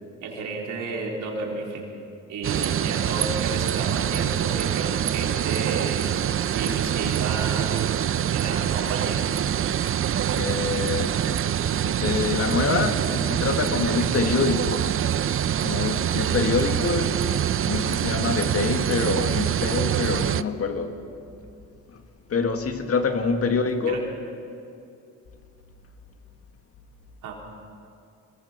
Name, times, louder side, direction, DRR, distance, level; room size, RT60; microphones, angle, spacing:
voice 1, 0.2-1.9 2.3-6.1 6.5-7.8 8.3-9.2 23.4-23.6 23.9-24.0 27.2-27.3, right 4 dB, 80° right, -1 dB, 4.2 m, -32 dB
sound 1, 2.4-20.4, right 10 dB, 45° right, 0.6 m, -25 dB
voice 2, 10.3-11.3 11.8-14.9 15.6-17.2 17.7-21.0 21.9-22.0 22.3-24.1, left 4 dB, 50° left, 6 dB, 2.0 m, -26 dB
25.5 x 21.0 x 5.8 m, 2.6 s
cardioid pair, 90°, 30 cm